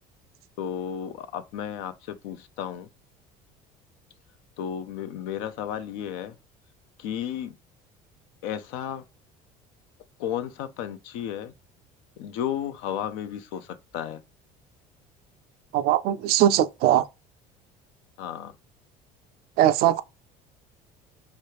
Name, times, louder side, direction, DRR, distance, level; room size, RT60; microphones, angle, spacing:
voice 1, 0.6-2.9 4.6-6.3 7.0-7.5 8.4-9.0 10.2-11.5 12.2-14.2 18.2-18.5, left 9 dB, 80° left, 0.4 m, -33 dB
voice 2, 15.7-17.1 19.6-20.0, right 12 dB, 60° right, 0.4 m, -20 dB
3.1 x 2.4 x 2.9 m
supercardioid pair, 85°, 18 cm